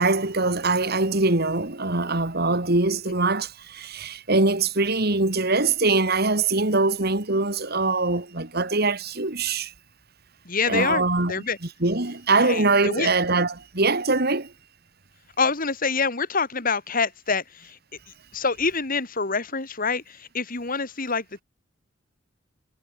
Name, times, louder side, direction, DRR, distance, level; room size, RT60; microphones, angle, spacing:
voice 1, 0.0-9.7 10.7-11.4 11.8-14.5, right 3 dB, 50° right, 2.8 m, -23 dB
voice 2, 10.4-11.0 11.3-11.6 12.4-13.1 15.4-17.8 18.3-21.4, left 4 dB, 45° left, 2.7 m, -26 dB
head